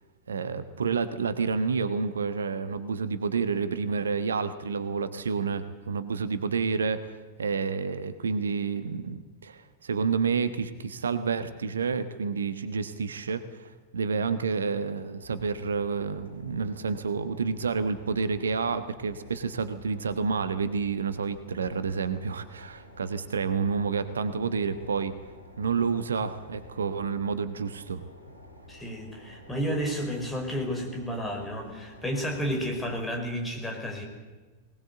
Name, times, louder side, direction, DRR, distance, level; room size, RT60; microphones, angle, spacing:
voice 1, 0.3-25.1 25.6-28.0, right 5 dB, 70° right, 12 dB, 1.2 m, -29 dB
sound 1, 15.2-33.4, left 1 dB, 85° left, 5.3 m, -51 dB
voice 2, 28.7-34.0, equal, 10° left, 2 dB, 5.3 m, -31 dB
20.0 x 19.5 x 8.1 m, 1.3 s
figure-of-eight pair, 90°, 0 cm